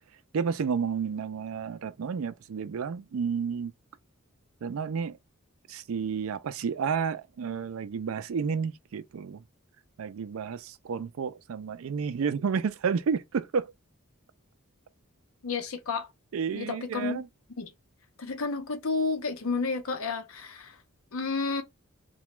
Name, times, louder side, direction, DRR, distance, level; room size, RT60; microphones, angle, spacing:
voice 1, 0.3-3.7 4.6-5.2 5.7-9.4 10.0-13.7 16.3-17.3, right 6 dB, 75° right, 0.4 m, -31 dB
voice 2, 15.4-16.1 16.5-17.2 17.6-17.7 18.2-20.7 21.1-21.6, left 4 dB, 75° left, 0.7 m, -31 dB
2.9 x 2.2 x 3.2 m
head